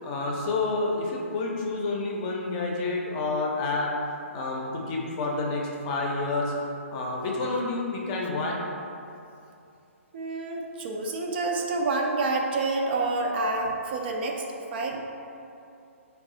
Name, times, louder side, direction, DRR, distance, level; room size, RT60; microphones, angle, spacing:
voice 1, 0.0-3.9 4.3-6.5 6.9-8.6, left 3 dB, 30° left, -2 dB, 0.6 m, -29 dB
voice 2, 10.1-14.4 14.7-15.0, right 3 dB, 45° right, 1 dB, 0.5 m, -28 dB
4.6 x 2.4 x 3.7 m, 2.6 s
figure-of-eight pair, 135°, 8 cm